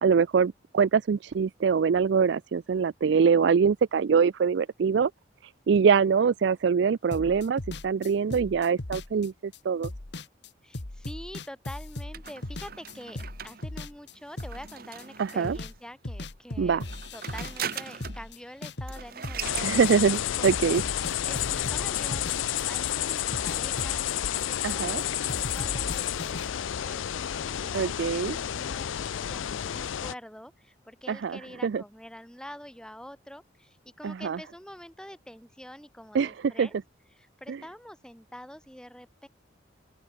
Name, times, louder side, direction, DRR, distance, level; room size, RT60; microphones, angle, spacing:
voice 1, 0.0-5.1 5.4-9.9 15.2-15.6 16.6-16.8 19.6-20.8 24.6-25.0 27.7-28.4 31.1-31.8 34.0-34.4 36.1-36.7 37.5-37.6, right 6 dB, 65° right, 0.4 m, -24 dB
sound 1, 7.1-15.0 15.3-15.8 16.0-20.2 20.4-22.9 23.2-25.0 25.3-26.5, left 2 dB, 65° left, 1.7 m, -38 dB
voice 2, 10.6-19.8 20.4-20.8 21.2-36.7 37.1-39.3, equal, 5° left, 2.7 m, -46 dB
sound 2, 12.1-15.8 16.8-18.3 18.6-18.7 18.9-19.7, right 8 dB, 50° right, 1.2 m, -39 dB
sound 3, 19.4-30.1, left 10 dB, 85° left, 0.5 m, -30 dB
open air
head